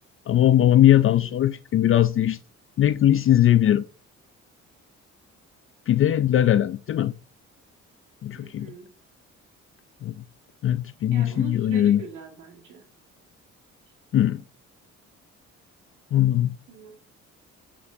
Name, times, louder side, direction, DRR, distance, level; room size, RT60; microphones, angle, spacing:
voice 1, 0.3-2.4 2.8-3.8 5.9-7.1 8.2-8.7 10.0-10.2 10.6-12.0 14.1-14.4 16.1-16.6, left 12 dB, 45° left, 0.4 m, -20 dB
voice 2, 8.4-8.9 11.1-12.9 16.7-17.0, right 6 dB, 85° right, 2.0 m, -42 dB
7.6 x 6.1 x 2.7 m
cardioid pair, 90°, 30 cm